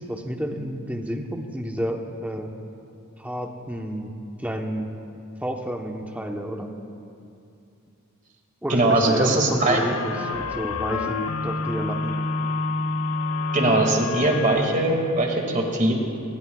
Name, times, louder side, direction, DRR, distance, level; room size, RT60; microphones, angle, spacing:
voice 1, 0.0-2.5 3.2-4.1 4.4-4.9 5.4-6.8 8.6-12.2, equal, 5° right, 2 dB, 1.0 m, -30 dB
voice 2, 8.7-9.8 13.5-15.9, right 2 dB, 35° right, 1 dB, 2.1 m, -21 dB
sound 1, 9.6-14.7, left 3 dB, 90° left, 0.8 m, -28 dB
22.0 x 19.5 x 2.4 m, 2.6 s
head